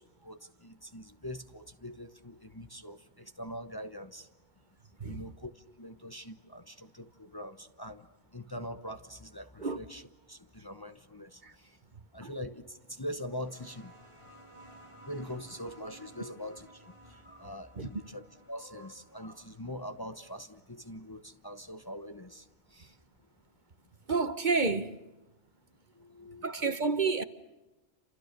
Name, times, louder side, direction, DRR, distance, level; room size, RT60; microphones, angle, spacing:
voice 1, 0.0-4.3 5.0-11.8 12.1-13.9 15.0-23.0 25.9-26.5, equal, 20° left, 1.0 m, -43 dB
sound 1, 13.1-22.4 23.5-23.6, right 1 dB, 25° right, 4.2 m, -57 dB
voice 2, 24.1-25.0 26.4-27.2, right 4 dB, 45° right, 1.3 m, -29 dB
29.0 x 28.0 x 6.7 m
omnidirectional pair, 1.1 m